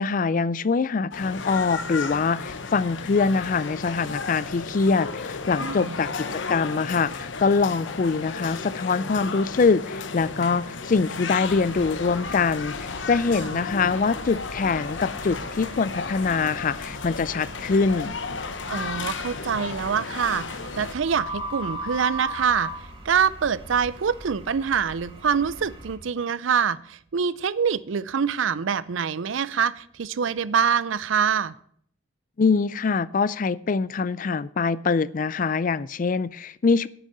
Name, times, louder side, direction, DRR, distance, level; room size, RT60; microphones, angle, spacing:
voice 1, 0.0-18.2 32.4-36.9, left 4 dB, 45° left, 20 dB, 0.4 m, -24 dB
sound 1, 1.1-20.9, left 4 dB, 70° left, 0.9 m, -34 dB
voice 2, 5.6-6.0 13.4-13.6 18.7-20.4 20.8-22.7 23.0-31.5, right 7 dB, 80° right, 19 dB, 0.5 m, -25 dB
sound 2, 11.4-26.0, right 1 dB, 30° right, 1.9 m, -40 dB
8.9 x 6.5 x 8.6 m, 0.63 s
head